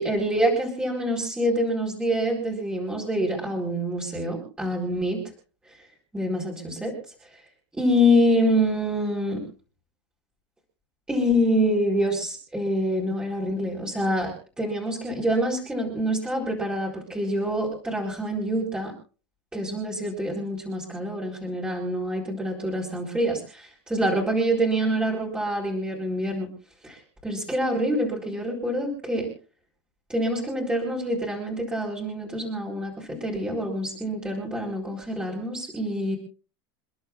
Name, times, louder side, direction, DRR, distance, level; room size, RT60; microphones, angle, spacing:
voice 1, 0.0-5.2 6.1-6.9 7.8-9.4 11.1-18.9 19.5-26.5 26.8-29.3 30.1-36.2, equal, 5° right, -3 dB, 4.3 m, -26 dB
29.5 x 11.0 x 2.4 m, 0.37 s
supercardioid pair, 140°, 14 cm